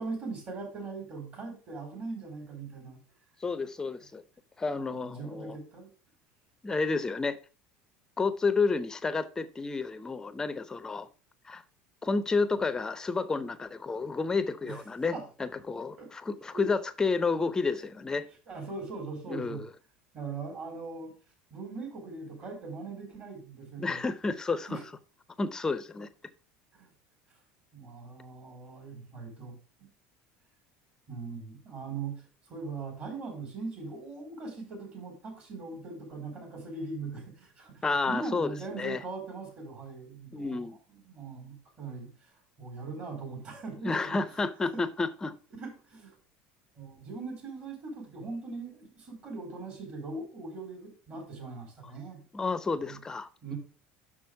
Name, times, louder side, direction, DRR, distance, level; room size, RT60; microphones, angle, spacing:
voice 1, 0.0-3.0 4.7-5.9 14.6-14.8 15.1-15.2 16.0-16.1 16.5-16.7 18.5-19.6 20.1-21.1 21.5-24.0 24.7-24.8 26.7-26.9 27.7-29.9 31.1-40.7 41.0-42.3 42.6-44.4 44.7-44.8 45.6-46.1 46.7-52.2 52.9-53.0 53.4-53.6, right 4 dB, 45° right, 4.0 m, -40 dB
voice 2, 3.4-4.2 4.6-5.6 6.6-7.4 8.2-11.1 11.4-11.6 12.0-15.1 15.4-18.3 19.3-19.7 23.8-24.8 25.4-26.1 37.8-39.0 40.3-40.8 43.8-45.3 52.3-53.5, left 4 dB, 15° left, 0.6 m, -30 dB
6.1 x 6.1 x 4.7 m
supercardioid pair, 125°, 4 cm